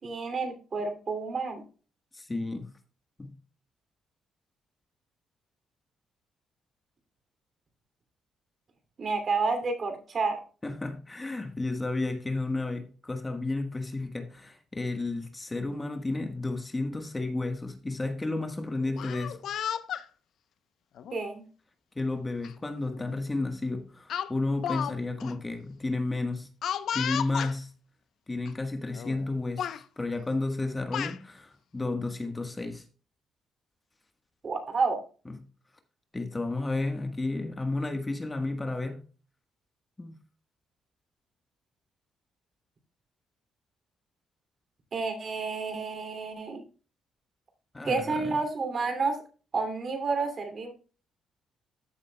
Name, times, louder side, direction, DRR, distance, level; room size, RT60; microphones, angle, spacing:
voice 1, 0.0-1.6 9.0-10.4 21.1-21.4 34.4-35.0 44.9-46.6 47.8-49.2 49.5-50.7, right 4 dB, 45° right, 2.7 m, -30 dB
voice 2, 2.1-2.7 3.2-3.3 10.6-19.5 21.9-26.5 26.9-27.7 28.3-32.8 35.2-35.4 36.1-39.0 40.0-40.2 47.7-48.3, left 2 dB, 20° left, 1.4 m, -32 dB
Speech, 18.8-20.0 21.0-21.2 22.4-22.5 22.9-23.1 24.1-24.9 25.2-25.3 26.6-27.5 28.4-28.5 28.9-29.3 29.6-29.8 30.6-31.2, left 9 dB, 70° left, 0.7 m, -33 dB
14.0 x 7.3 x 2.3 m
cardioid pair, 90°, 0 cm